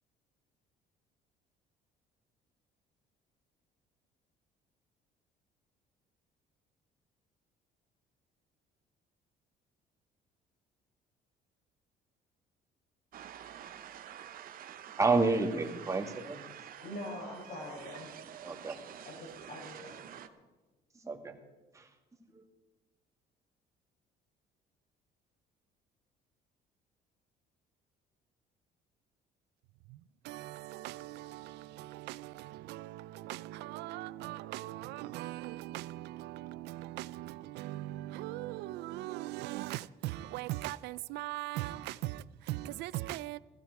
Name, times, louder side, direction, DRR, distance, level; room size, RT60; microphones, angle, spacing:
sound 1, 13.1-20.3, right 10 dB, 60° right, 0.9 m, -48 dB
voice 1, 15.0-16.4 18.4-18.8 21.0-21.3 21.7-21.9 22.3-22.4, right 3 dB, 20° right, 2.0 m, -30 dB
voice 2, 16.8-18.1 19.0-20.3, left 1 dB, 75° left, 6.6 m, -44 dB
voice 3, 30.2-43.4, right 16 dB, 85° right, 0.5 m, -40 dB
16.0 x 15.5 x 4.8 m
cardioid pair, 110°, 17 cm